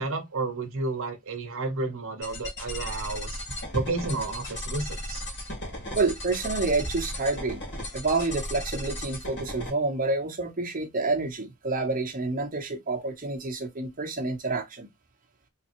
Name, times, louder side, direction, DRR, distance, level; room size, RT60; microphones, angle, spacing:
voice 1, 0.0-3.4 3.7-5.2, right 3 dB, 60° right, 1.0 m, -31 dB
sound 1, 2.2-9.7, left 1 dB, 50° left, 2.0 m, -36 dB
voice 2, 5.9-7.6 7.9-14.9, right 3 dB, 40° right, 1.0 m, -28 dB
3.7 x 3.3 x 3.0 m
head